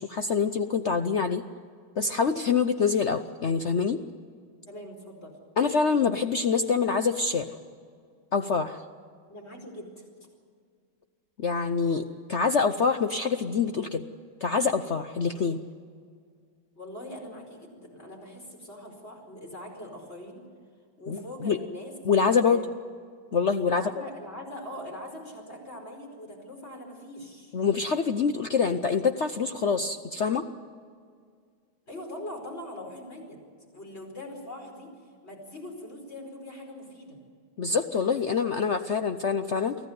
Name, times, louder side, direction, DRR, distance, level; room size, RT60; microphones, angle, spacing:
voice 1, 0.0-1.4 2.0-4.0 5.6-7.5 8.3-8.8 11.4-14.0 14.4-15.6 21.1-21.6 22.1-22.6 23.3-23.8 27.5-30.4 37.6-39.8, left 5 dB, 75° left, 8 dB, 0.6 m, -25 dB
voice 2, 4.7-5.4 9.3-10.1 16.7-20.4 21.0-21.9 22.3-22.7 23.6-27.5 31.9-33.4 33.7-34.9 35.2-37.2, left 1 dB, 30° left, 1 dB, 5.1 m, -42 dB
24.5 x 15.5 x 9.4 m, 2.1 s
omnidirectional pair, 2.2 m